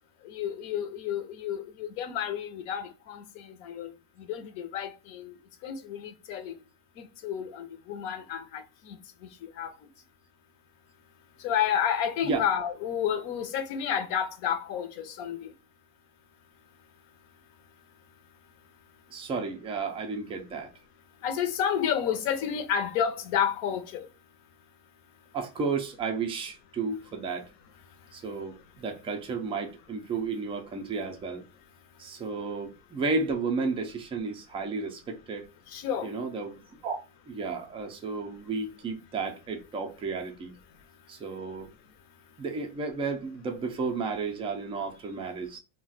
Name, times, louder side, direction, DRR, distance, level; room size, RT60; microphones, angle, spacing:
voice 1, 0.2-3.9 4.3-5.3 5.6-6.6 7.2-9.0 9.4-9.7 11.4-15.5 21.2-24.1 35.7-36.1, left 8 dB, 55° left, 0.6 m, -30 dB
voice 2, 19.1-20.7 25.3-27.5 28.1-31.4 32.0-35.5 36.0-37.0 37.3-40.5 41.1-41.7 42.4-45.6, right 4 dB, 15° right, 0.3 m, -33 dB
2.4 x 2.2 x 3.9 m
supercardioid pair, 135°, 43 cm